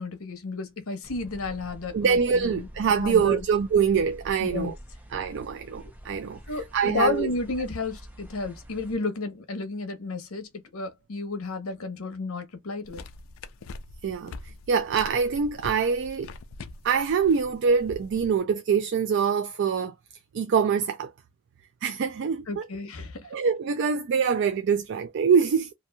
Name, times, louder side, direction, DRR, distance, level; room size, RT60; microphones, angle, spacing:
voice 1, 0.0-2.7 3.0-3.4 4.4-4.7 6.5-13.0 22.5-23.3, left 3 dB, 90° left, 0.8 m, -32 dB
sound 1, 1.0-9.0, equal, 10° right, 0.6 m, -46 dB
voice 2, 1.9-4.8 5.1-7.3 14.0-16.3 16.8-19.9 20.3-21.1 21.8-22.7 23.2-25.7, right 6 dB, 60° right, 0.3 m, -24 dB
sound 2, 12.8-18.4, left 3 dB, 70° left, 0.4 m, -43 dB
2.9 x 2.5 x 2.2 m
head